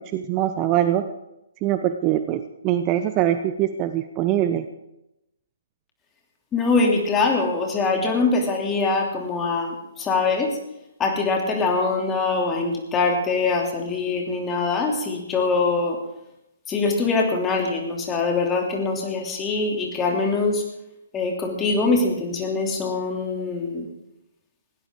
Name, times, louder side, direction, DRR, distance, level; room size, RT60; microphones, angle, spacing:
voice 1, 0.1-1.0 1.6-4.6, right 12 dB, 25° right, 10 dB, 0.7 m, -23 dB
voice 2, 6.5-10.6 11.0-16.0 16.7-20.6 21.1-23.9, left 3 dB, 15° left, 1 dB, 2.8 m, -23 dB
19.5 x 17.0 x 3.8 m, 0.88 s
figure-of-eight pair, 130°, 0 cm